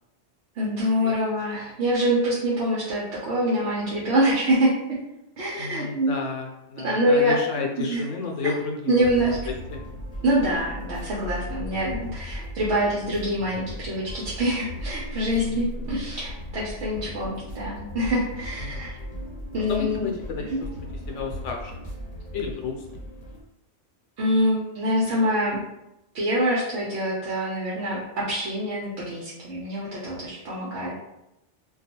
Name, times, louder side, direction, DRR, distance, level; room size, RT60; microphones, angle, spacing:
voice 1, 0.6-4.7 5.4-6.1 6.8-7.4 7.9-8.0 8.4-8.6 8.9-9.4 10.2-19.0 19.5-20.1 20.5-20.6 24.2-25.6 26.1-31.1, equal, 70° right, -7 dB, 0.9 m, -25 dB
voice 2, 5.6-9.8 15.4-15.6 17.0-17.2 18.6-18.8 19.7-20.4 21.1-21.8 22.3-23.0, left 4 dB, 80° left, 1 dB, 0.9 m, -32 dB
sound 1, 9.0-23.4, equal, 45° left, 0.8 m, -37 dB
2.3 x 2.3 x 2.8 m, 0.87 s
omnidirectional pair, 1.2 m